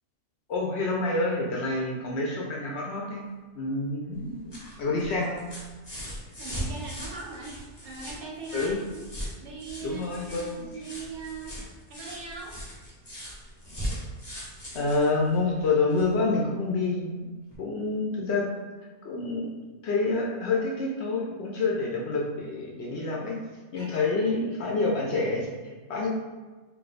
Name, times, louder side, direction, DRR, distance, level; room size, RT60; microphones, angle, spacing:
voice 1, 0.5-3.3 3.5-5.4 6.0-6.1 8.5-8.8 9.8-10.7 14.7-17.3 17.6-18.5 19.0-19.6 19.8-23.4 23.7-26.1, left 3 dB, 65° left, -2 dB, 0.7 m, -28 dB
sound 1, 4.1-16.2 17.5-17.6, equal, 25° left, 0.7 m, -39 dB
voice 2, 6.3-9.0 9.4-11.6 11.9-12.6 23.7-24.4, right 4 dB, 65° right, -1 dB, 0.8 m, -40 dB
2.4 x 2.2 x 3.9 m, 1.3 s
omnidirectional pair, 1.4 m